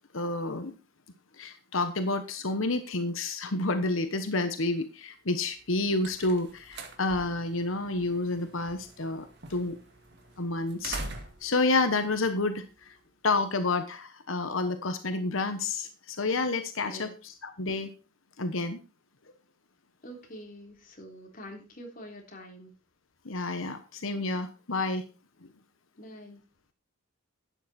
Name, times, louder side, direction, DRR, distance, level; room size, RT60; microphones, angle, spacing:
voice 1, 0.1-0.8 1.3-9.8 10.4-11.0 11.4-13.0 13.2-17.9 18.4-18.8 23.2-25.0, left 2 dB, 80° left, 9 dB, 1.2 m, -29 dB
sound 1, 5.5-13.0, right 2 dB, 55° right, 2.1 m, -45 dB
voice 2, 20.0-22.7 26.0-26.4, equal, 40° left, 2 dB, 3.4 m, -45 dB
12.0 x 9.3 x 4.3 m, 0.32 s
head